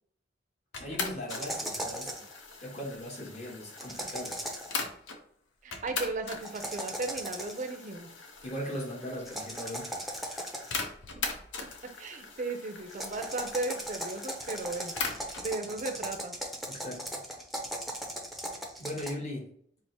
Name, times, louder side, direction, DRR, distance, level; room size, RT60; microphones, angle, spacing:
sound 1, 0.7-5.2 5.7-15.5, left 4 dB, 80° left, 0.7 m, -40 dB
voice 1, 0.7-2.1 2.6-4.4 8.4-10.1 16.7-17.2 18.8-19.5, equal, 35° left, -1 dB, 1.1 m, -39 dB
sound 2, 1.3-2.3 3.8-4.8 6.4-7.7 9.3-10.8 12.9-19.1, right 1 dB, ahead, 0.6 m, -38 dB
voice 2, 5.6-8.1 11.2-11.3 11.8-14.9 15.4-16.3, right 3 dB, 45° right, 6 dB, 0.5 m, -36 dB
4.5 x 2.0 x 4.1 m, 0.62 s
head